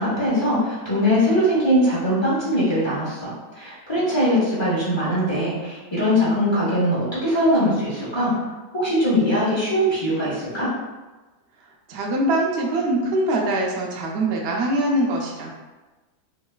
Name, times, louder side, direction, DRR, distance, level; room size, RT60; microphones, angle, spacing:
voice 1, 0.0-8.3 8.7-10.7, equal, 30° left, -9 dB, 0.5 m, -21 dB
voice 2, 11.9-15.5, right 1 dB, 80° right, -1 dB, 0.5 m, -23 dB
3.9 x 2.3 x 2.3 m, 1.2 s
omnidirectional pair, 1.8 m